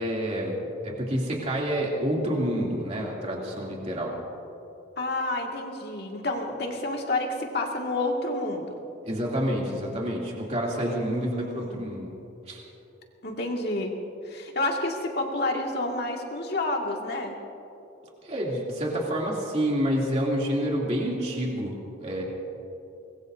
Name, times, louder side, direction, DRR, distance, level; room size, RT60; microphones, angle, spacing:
voice 1, 0.0-4.1 9.0-12.1 12.5-12.6 18.2-21.8 22.0-22.2, equal, 35° right, -3 dB, 2.9 m, -28 dB
voice 2, 5.0-8.8 11.0-11.8 13.2-13.9 14.2-17.3, left 2 dB, 55° left, 0 dB, 2.1 m, -29 dB
24.5 x 21.0 x 2.7 m, 3.0 s
head